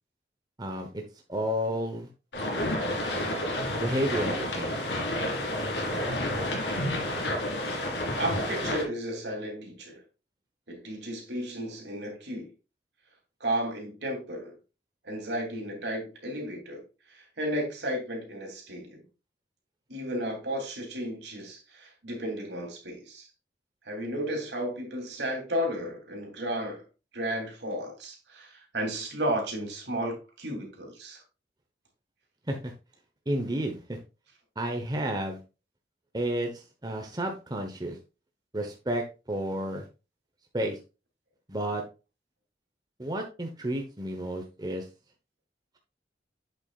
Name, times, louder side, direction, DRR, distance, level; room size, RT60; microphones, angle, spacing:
voice 1, 0.6-1.0 1.3-2.1 3.8-4.8 32.5-32.7 33.3-34.0 34.6-35.4 36.1-38.0 38.5-39.9 40.5-40.8 41.5-41.8 43.0-44.8, right 1 dB, 25° right, 1.0 m, -31 dB
sound 1, 2.3-8.8, left 1 dB, 75° left, 2.3 m, -30 dB
voice 2, 8.1-10.0 10.7-12.5 13.4-14.6 15.0-19.0 19.9-23.3 23.8-26.8 27.1-31.2, right 1 dB, 75° right, 2.9 m, -33 dB
8.1 x 7.0 x 2.4 m
head